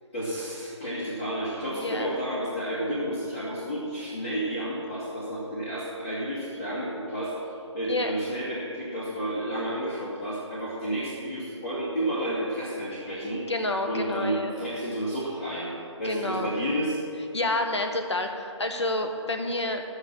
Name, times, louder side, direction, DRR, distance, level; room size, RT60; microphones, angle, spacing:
voice 1, 0.1-13.4 13.9-17.0, right 1 dB, 20° left, -10 dB, 2.4 m, -31 dB
voice 2, 1.7-2.1 7.9-8.1 13.5-14.6 16.0-16.5 17.3-19.8, left 2 dB, 60° left, 5 dB, 1.4 m, -29 dB
14.5 x 6.6 x 7.3 m, 2.5 s
figure-of-eight pair, 150°, 16 cm